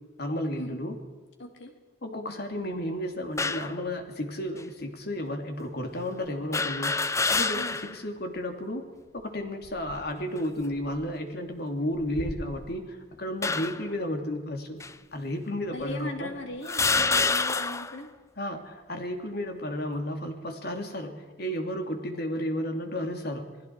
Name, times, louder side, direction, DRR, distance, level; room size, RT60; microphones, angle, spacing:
voice 1, 0.2-1.0 2.0-8.8 9.1-14.8 15.1-16.3 18.4-23.5, left 1 dB, 60° left, 4 dB, 2.9 m, -33 dB
voice 2, 1.4-1.7 7.5-8.0 15.7-18.1, left 1 dB, 80° left, 2 dB, 3.5 m, -38 dB
sound 1, 3.4-3.8 4.6-4.7 6.5-8.0 8.4-8.5 9.6-10.1 10.8-11.0 12.0-12.8 13.4-13.9 14.8-14.9 15.8-15.9 16.6-18.0, left 4 dB, 15° left, 0.5 m, -28 dB
28.5 x 20.0 x 4.8 m, 1.4 s
head